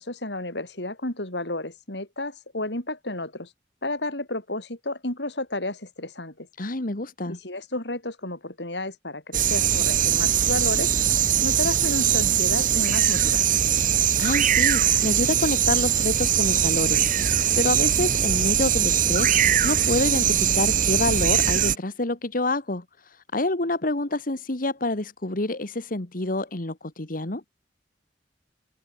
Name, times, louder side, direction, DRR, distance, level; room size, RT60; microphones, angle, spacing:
voice 1, 0.0-3.5 3.8-6.5 7.3-10.9 11.4-13.6, left 2 dB, 80° left, 7.9 m, -32 dB
voice 2, 6.6-7.4 14.2-27.4, left 2 dB, 55° left, 1.8 m, -27 dB
sound 1, 9.3-21.7, right 9 dB, 50° right, 1.4 m, -21 dB
head